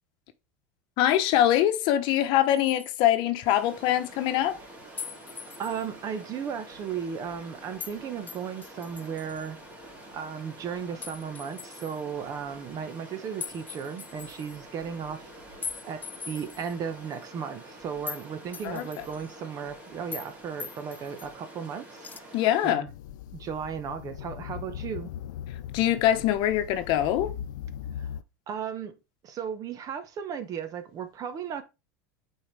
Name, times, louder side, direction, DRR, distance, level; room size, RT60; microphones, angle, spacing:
voice 1, 1.0-4.6 18.6-18.9 22.3-22.8 25.7-27.3, left 12 dB, 55° left, 0.9 m, -23 dB
sound 1, 2.5-3.0 5.0-5.8 7.8-8.0 8.3-9.5 11.0-12.0 13.4-14.6 15.6-16.7 17.1-17.2 18.1-18.3 18.5-19.4 20.1-20.3 20.6-21.3 22.0-22.2, left 6 dB, 15° left, 0.5 m, -41 dB
Stream, 3.4-22.7, right 1 dB, 15° right, 2.8 m, -47 dB
voice 2, 5.6-15.3 15.9-22.1 22.6-22.9 23.3-25.1 28.0-28.1 28.5-28.9 29.2-31.6, right 7 dB, 35° right, 1.0 m, -35 dB
sound 2, 22.9-28.2, left 10 dB, 85° left, 0.4 m, -39 dB
8.6 x 4.5 x 3.3 m
supercardioid pair, 125°, 10 cm